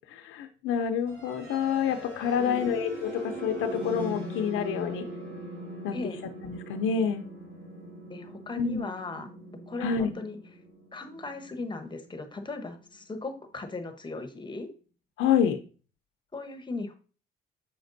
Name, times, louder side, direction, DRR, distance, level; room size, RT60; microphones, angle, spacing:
voice 1, 0.1-5.0 5.8-6.0 6.4-7.2 8.6-8.9 9.8-10.1 15.2-15.6, left 7 dB, 85° left, 5 dB, 0.6 m, -28 dB
sound 1, 1.0-12.9, right 1 dB, 85° right, 2.2 m, -41 dB
voice 2, 2.4-2.8 5.9-6.2 8.1-9.3 9.7-10.4 10.9-14.7 16.3-17.0, left 3 dB, 25° left, 7 dB, 0.9 m, -37 dB
6.9 x 5.1 x 2.6 m, 0.38 s
cardioid pair, 90°, 20 cm